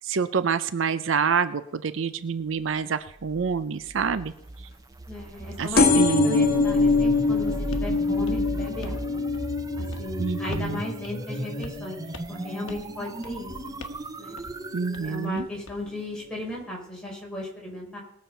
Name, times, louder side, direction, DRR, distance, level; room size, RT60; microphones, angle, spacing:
voice 1, 0.0-4.3 5.6-6.6 10.2-10.8 14.7-15.5, right 6 dB, 65° right, 13 dB, 0.5 m, -27 dB
sound 1, 3.2-15.3, right 1 dB, 15° right, 0.5 m, -36 dB
voice 2, 5.1-9.2 9.8-12.0 12.3-13.7 14.2-14.4 15.0-18.0, left 1 dB, 5° left, -3 dB, 4.5 m, -36 dB
sound 2, 5.8-13.0 13.5-13.9 14.8-14.9 15.1-15.2 15.4-15.5, left 3 dB, 50° left, 1.5 m, -25 dB
sound 3, 7.7-7.9 8.3-9.1 9.3-9.6 9.9-10.1 10.5-10.8 11.0-11.1 11.6-11.9 12.1-12.4 12.7-12.9 13.2-13.5 13.8-14.1 14.4-14.6 14.9-15.8, left 1 dB, 70° left, 1.2 m, -42 dB
20.0 x 7.2 x 5.6 m, 0.85 s
head